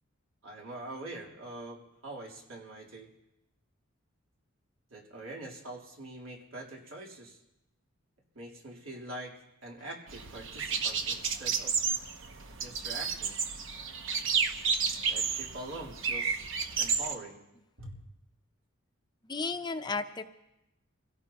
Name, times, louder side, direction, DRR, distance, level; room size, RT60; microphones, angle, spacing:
voice 1, 0.4-3.1 4.9-7.4 8.4-9.4 9.6-11.8 12.6-13.4 15.1-16.5 16.8-17.4 17.8-18.0, right 1 dB, 85° right, -2 dB, 3.4 m, -44 dB
sound 1, 10.1-17.2, right 5 dB, 65° right, 1.0 m, -31 dB
voice 2, 19.2-20.2, left 4 dB, 20° left, 8 dB, 0.6 m, -33 dB
26.5 x 16.5 x 2.9 m, 0.90 s
head